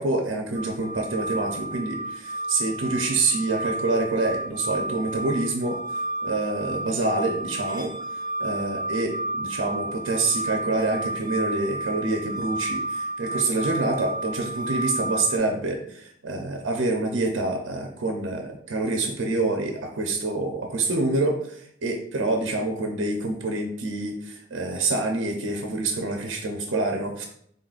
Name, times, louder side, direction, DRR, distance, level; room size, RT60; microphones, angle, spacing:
voice 1, 0.0-5.8 6.2-7.9 8.4-27.3, right 2 dB, 85° right, 2 dB, 0.6 m, -27 dB
sound 1, 0.5-15.4, right 2 dB, 20° right, 0.6 m, -31 dB
3.9 x 3.8 x 2.4 m, 0.66 s
head